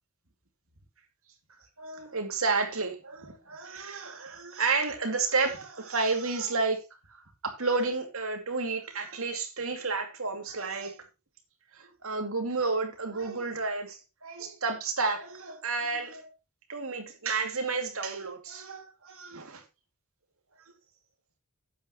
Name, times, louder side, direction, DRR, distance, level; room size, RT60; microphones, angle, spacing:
voice 1, 1.8-6.8 7.1-11.0 11.7-16.3 16.7-19.6, right 4 dB, 70° right, 2.5 m, -31 dB
12.0 x 9.2 x 3.0 m
head